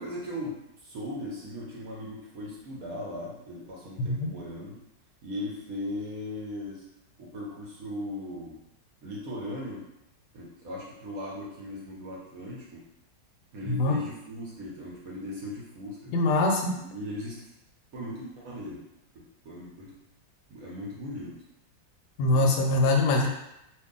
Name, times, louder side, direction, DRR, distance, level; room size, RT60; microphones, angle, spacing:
voice 1, 0.0-4.8 5.2-6.8 7.2-8.6 9.0-9.9 10.3-12.8 13.5-16.1 16.7-17.4 17.9-18.8 19.1-19.9 20.5-21.4 22.2-22.5, left 1 dB, 65° right, -4 dB, 0.9 m, -38 dB
voice 2, 16.1-16.7 22.2-23.3, left 2 dB, 70° left, 1 dB, 1.0 m, -23 dB
2.8 x 2.7 x 3.6 m, 0.85 s
omnidirectional pair, 2.1 m